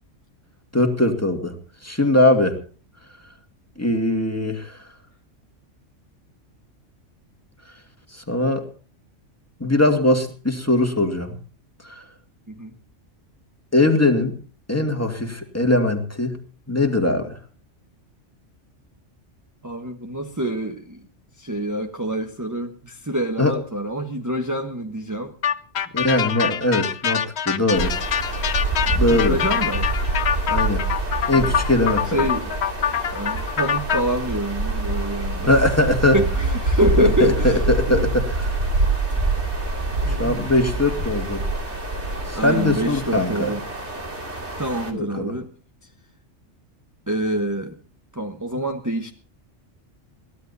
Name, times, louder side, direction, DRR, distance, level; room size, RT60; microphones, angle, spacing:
voice 1, 0.7-1.6 1.8-2.6 3.8-4.8 8.1-8.6 9.6-11.4 11.8-12.0 13.7-14.3 14.7-16.4 16.7-17.4 23.4-23.5 25.9-28.0 28.9-29.4 30.5-30.8 31.3-32.3 35.5-36.2 37.0-38.6 40.1-41.4 42.3-43.5 44.9-45.3, left 1 dB, 10° left, 5 dB, 2.2 m, -21 dB
voice 2, 19.6-21.0 21.4-25.3 29.1-29.9 31.3-31.5 32.1-32.5 33.1-35.5 36.1-38.1 40.0-40.4 42.3-43.6 44.6-45.5 47.1-47.7 48.1-49.1, right 1 dB, 15° right, 3 dB, 1.3 m, -26 dB
sound 1, 25.4-34.0, left 8 dB, 60° left, 1.1 m, -25 dB
sound 2, 27.7-44.9, right 2 dB, 65° right, 3.1 m, -26 dB
23.0 x 16.5 x 2.8 m, 0.40 s
omnidirectional pair, 1.3 m